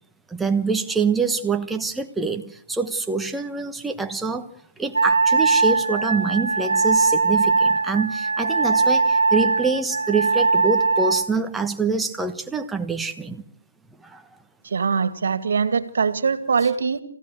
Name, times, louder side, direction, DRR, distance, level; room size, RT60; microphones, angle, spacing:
voice 1, 0.3-4.5 4.8-13.4 14.0-14.2, right 4 dB, 5° right, 6 dB, 1.2 m, -25 dB
Wind instrument woodwind instrument, 4.9-11.3, right 4 dB, 85° right, 1.6 m, -20 dB
voice 2, 14.6-17.0, right 5 dB, 65° right, 13 dB, 2.2 m, -22 dB
27.0 x 16.0 x 7.8 m, 0.63 s
hypercardioid pair, 155°, 0 cm